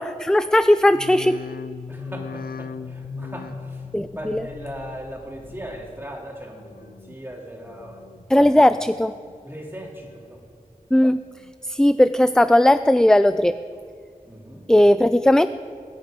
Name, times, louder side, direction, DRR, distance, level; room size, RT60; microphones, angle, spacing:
voice 1, 0.0-1.4 3.9-4.4 8.3-9.1 10.9-11.2 11.7-13.6 14.7-15.5, left 1 dB, 5° left, 13 dB, 0.3 m, -17 dB
sound 1, 0.9-6.2 6.5-7.2 7.6-8.3 8.7-9.4 9.8-10.5 10.9-11.5 12.1-12.2, left 5 dB, 90° left, 0.5 m, -39 dB
voice 2, 1.9-8.2 8.6-8.7 9.4-10.5 14.2-14.7, right 1 dB, 15° right, -1 dB, 2.9 m, -38 dB
21.0 x 10.0 x 5.1 m, 2.1 s
wide cardioid pair, 45°, 15 cm